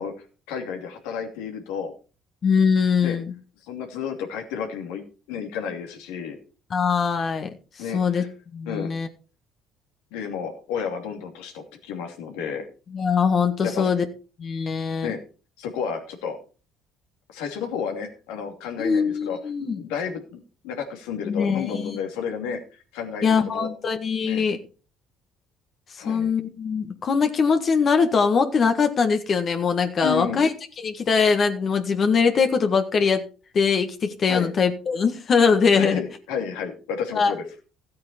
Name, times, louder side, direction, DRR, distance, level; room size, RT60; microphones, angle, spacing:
voice 1, 0.0-1.9 3.0-3.2 3.6-5.0 5.3-6.4 7.8-8.3 8.7-8.9 10.1-12.7 13.6-13.9 15.0-15.2 15.6-16.4 17.3-23.7 24.2-24.4 26.0-26.3 30.0-30.4 34.3-34.5 35.7-37.4, left 7 dB, 80° left, 4 dB, 2.7 m, -32 dB
voice 2, 2.4-3.3 6.7-7.5 7.9-8.2 8.5-9.1 12.9-14.0 14.4-15.1 18.8-19.8 21.2-22.0 23.2-24.6 25.9-30.5 30.8-33.2 33.5-36.0 37.1-37.3, left 5 dB, 45° left, 7 dB, 1.6 m, -22 dB
14.0 x 8.6 x 4.4 m, 0.35 s
supercardioid pair, 70°, 0 cm